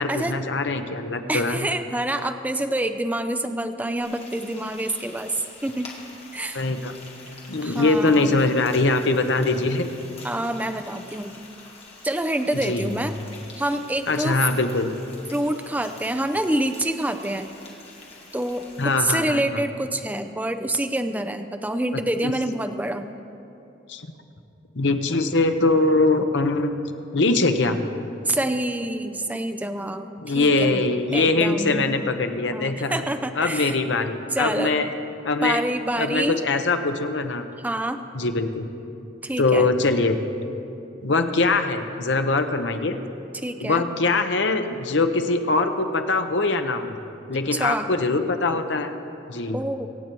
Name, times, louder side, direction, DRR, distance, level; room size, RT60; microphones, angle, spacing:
voice 1, 0.0-1.7 6.5-6.9 7.5-9.9 12.5-12.9 14.1-14.9 18.8-19.6 22.2-22.3 23.9-24.1 24.8-26.7 27.1-27.8 30.2-33.0 33.4-34.9 35.2-35.6 36.0-37.5 38.1-38.7 39.4-40.2 41.0-43.0 43.6-47.0 47.3-48.9 49.3-49.6, left 3 dB, 65° left, 7 dB, 0.9 m, -22 dB
voice 2, 1.3-5.9 6.3-6.6 7.6-8.4 10.2-11.3 12.0-13.1 13.6-14.4 15.3-17.5 18.3-23.1 28.3-30.8 31.1-31.9 32.5-33.8 34.3-34.7 35.4-36.4 37.6-38.0 39.2-39.7 43.3-43.9 47.5-47.9 49.5-49.9, right 1 dB, 10° right, 8 dB, 0.5 m, -27 dB
Frying (food), 4.0-18.9, left 3 dB, 30° left, 2.0 m, -46 dB
24.5 x 8.3 x 4.6 m, 2.8 s
head